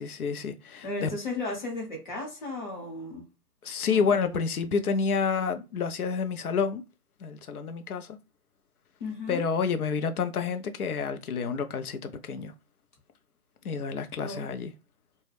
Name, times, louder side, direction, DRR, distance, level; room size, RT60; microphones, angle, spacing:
voice 1, 0.0-1.1 3.6-6.8 7.2-8.2 9.3-12.5 13.6-14.7, left 5 dB, 70° left, 0.6 m, -29 dB
voice 2, 0.8-3.2 3.9-4.4 9.0-9.4 14.2-14.5, left 2 dB, 30° left, 0.9 m, -35 dB
2.2 x 2.0 x 3.2 m
hypercardioid pair, 155°, 46 cm